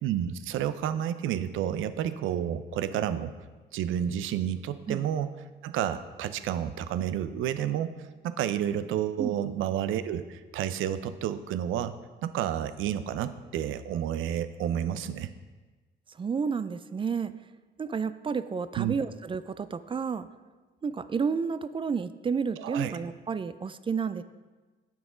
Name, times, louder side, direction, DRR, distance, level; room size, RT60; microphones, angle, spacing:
voice 1, 0.0-3.3 3.7-5.3 5.6-7.9 8.2-12.0 12.2-15.3 18.8-18.9 22.6-22.9, right 10 dB, 85° right, 13 dB, 0.5 m, -30 dB
voice 2, 16.1-17.3 17.8-20.3 20.8-24.2, right 5 dB, 25° right, 14 dB, 0.3 m, -31 dB
7.2 x 6.1 x 5.0 m, 1.3 s
cardioid pair, 90°, 20 cm